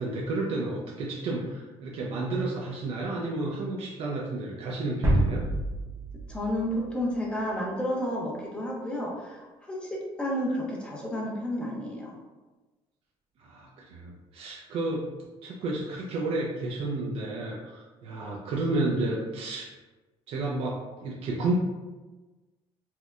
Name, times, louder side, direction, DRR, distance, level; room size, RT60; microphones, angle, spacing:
voice 1, 0.0-5.4 13.4-15.1 15.4-19.7 20.3-21.5, right 2 dB, 60° right, -3 dB, 0.5 m, -31 dB
sound 1, 5.0-7.5, right 1 dB, 25° right, 0.7 m, -28 dB
voice 2, 6.3-12.1, equal, 10° left, -2 dB, 0.6 m, -31 dB
4.3 x 2.1 x 2.4 m, 1.2 s
cardioid pair, 155°, 11 cm